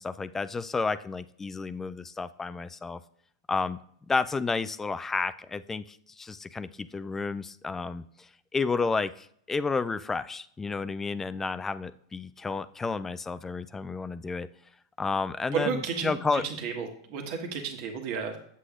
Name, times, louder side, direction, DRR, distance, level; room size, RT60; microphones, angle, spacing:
voice 1, 0.0-3.0 3.5-3.8 4.1-8.0 8.5-14.5 15.0-16.4, left 4 dB, 15° left, 14 dB, 0.3 m, -31 dB
voice 2, 15.5-18.4, right 6 dB, 55° right, 3 dB, 1.5 m, -32 dB
8.2 x 7.7 x 2.5 m, 0.67 s
hypercardioid pair, 115°, 2 cm